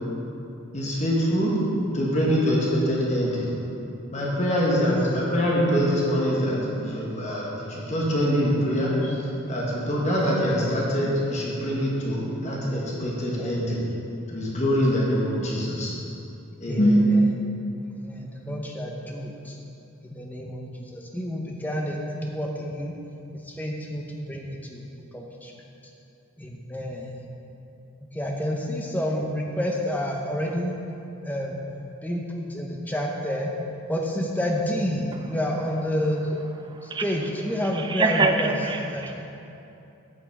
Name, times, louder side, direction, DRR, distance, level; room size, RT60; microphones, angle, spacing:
voice 1, 0.7-1.5 1.9-3.5 4.1-6.5 6.8-9.2 9.5-13.8 14.3-15.9 16.6-17.0, equal, 30° left, -4 dB, 1.3 m, -24 dB
voice 2, 17.8-19.5 20.0-20.6 20.9-22.9 23.5-24.8 25.1-25.5 26.4-27.1 28.1-30.8 31.2-31.5 32.0-33.5 33.9-36.2 37.0-38.6 38.9-39.1, equal, 10° left, -1 dB, 0.7 m, -29 dB
voice 3, 37.9-39.1, right 3 dB, 20° right, 5 dB, 0.4 m, -24 dB
8.4 x 5.8 x 4.7 m, 2.8 s
head